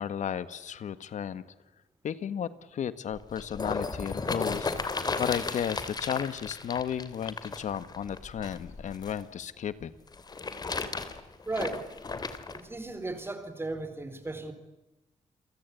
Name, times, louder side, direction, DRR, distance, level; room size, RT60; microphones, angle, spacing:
voice 1, 0.0-1.4 2.0-4.7 5.2-9.9, left 8 dB, 80° left, 14 dB, 1.6 m, -34 dB
sound 1, 3.1-9.2 10.1-12.6 13.3-13.4, left 4 dB, 35° left, 2.8 m, -35 dB
voice 2, 11.5-11.9 12.5-14.5, right 2 dB, 20° right, 11 dB, 4.3 m, -35 dB
29.5 x 23.5 x 8.4 m, 0.99 s
wide cardioid pair, 140°, 12 cm